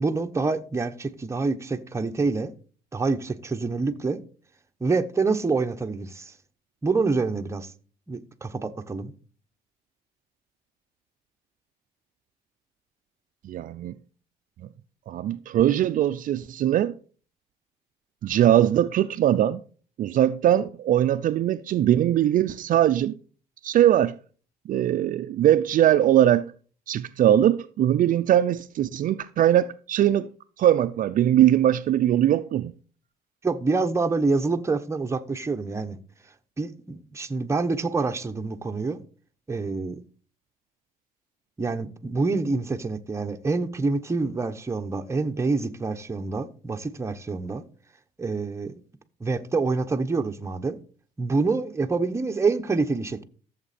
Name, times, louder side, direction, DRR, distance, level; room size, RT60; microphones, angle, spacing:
voice 1, 0.0-2.5 2.9-4.2 4.8-6.3 6.8-7.7 8.1-9.1 33.4-36.0 36.6-39.0 39.5-40.0 41.6-47.6 48.2-48.7 49.2-50.8 51.2-53.2, right 3 dB, 15° right, 1.0 m, -26 dB
voice 2, 13.4-13.9 15.1-16.9 18.2-19.6 20.0-23.1 23.6-24.2 24.7-26.5 26.9-30.3 30.6-32.7, right 11 dB, 55° right, 0.5 m, -21 dB
14.0 x 7.4 x 4.2 m
cardioid pair, 110°, 17 cm